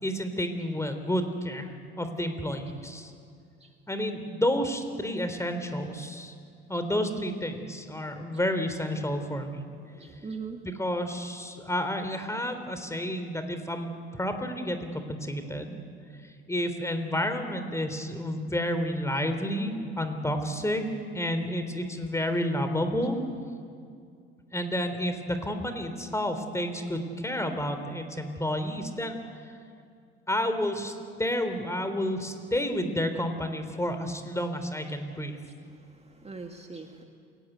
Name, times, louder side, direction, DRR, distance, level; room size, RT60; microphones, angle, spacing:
voice 1, 0.0-3.1 3.9-6.3 6.7-9.6 10.6-15.8 16.5-20.8 21.1-23.2 24.5-29.2 30.3-30.9 31.2-35.4, equal, 10° left, 8 dB, 3.6 m, -30 dB
voice 2, 9.8-10.6 34.9-35.0 35.4-37.0, right 4 dB, 20° right, 4 dB, 2.0 m, -42 dB
28.0 x 18.0 x 8.1 m, 2.3 s
hypercardioid pair, 65°, 32 cm